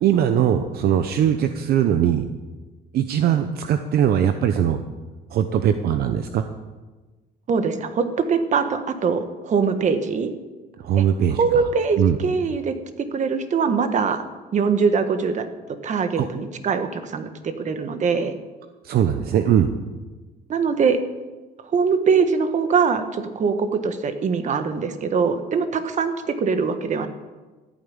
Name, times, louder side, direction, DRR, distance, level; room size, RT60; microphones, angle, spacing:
voice 1, 0.0-2.2 2.9-4.8 5.3-6.5 10.8-11.6 12.0-12.2 16.2-16.3 18.8-19.7, right 9 dB, 65° right, 8 dB, 0.9 m, -20 dB
voice 2, 7.5-10.3 11.0-11.1 11.4-14.2 14.5-15.5 15.8-18.3 20.5-21.0 21.7-27.1, right 5 dB, 45° right, 8 dB, 1.6 m, -22 dB
14.0 x 9.3 x 8.9 m, 1.3 s
cardioid pair, 110°, 17 cm